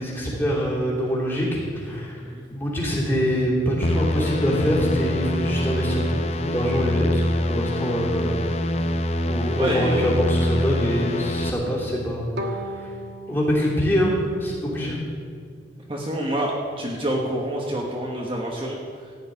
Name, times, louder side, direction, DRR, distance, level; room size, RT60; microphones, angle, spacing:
voice 1, 0.0-2.2 2.5-6.1 6.5-8.5 9.2-12.9 13.3-15.0, equal, 10° left, -6 dB, 3.0 m, -24 dB
sound 1, 3.8-11.5, left 1 dB, 35° left, 0.6 m, -25 dB
voice 2, 9.5-10.1 14.9-15.0 15.9-19.0, right 1 dB, 30° right, -2 dB, 1.2 m, -27 dB
Bowed string instrument, 12.4-15.4, equal, 75° right, 1.2 m, -37 dB
15.0 x 5.2 x 9.5 m, 2.1 s
head